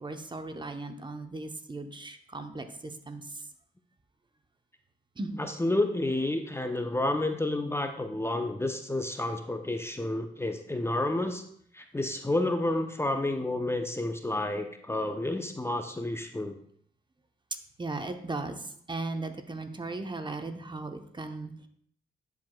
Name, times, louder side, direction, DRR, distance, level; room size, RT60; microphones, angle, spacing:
voice 1, 0.0-3.2 5.2-5.4 17.8-21.7, right 2 dB, 25° right, 7 dB, 0.9 m, -37 dB
voice 2, 5.4-11.4 11.7-16.5, left 2 dB, 15° left, 6 dB, 0.7 m, -30 dB
11.5 x 4.8 x 2.3 m, 0.64 s
supercardioid pair, 55°, 18 cm